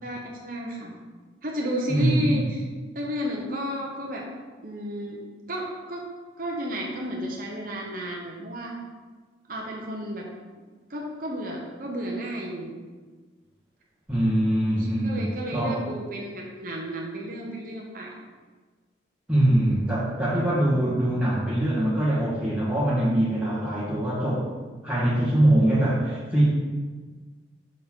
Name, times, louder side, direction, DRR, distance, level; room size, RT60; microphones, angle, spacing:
voice 1, 0.0-1.0 1.4-2.6 2.9-4.3 4.6-5.2 5.5-6.0 6.4-8.7 9.5-10.3 10.9-12.8 14.8-18.2, equal, 45° right, -1 dB, 0.9 m, -32 dB
voice 2, 1.9-2.4 14.1-15.9 19.3-24.5 24.8-26.4, right 1 dB, 5° right, -9 dB, 1.5 m, -23 dB
6.8 x 6.3 x 3.7 m, 1.4 s
head